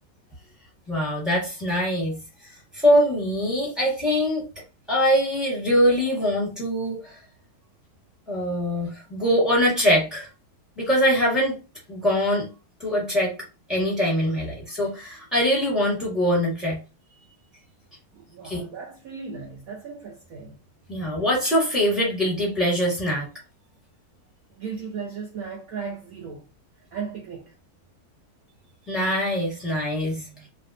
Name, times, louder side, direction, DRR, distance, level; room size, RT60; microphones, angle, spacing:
voice 1, 0.9-2.2 2.4-4.4 4.9-7.2 8.3-10.3 10.8-11.6 11.9-12.5 12.8-13.3 13.7-16.8 18.4-18.6 20.9-23.3 28.9-30.5, equal, ahead, 1.1 m, -23 dB
voice 2, 18.1-20.6 24.6-26.4 26.8-27.5, right 5 dB, 80° right, 0.7 m, -36 dB
3.3 x 2.5 x 2.6 m
omnidirectional pair, 2.3 m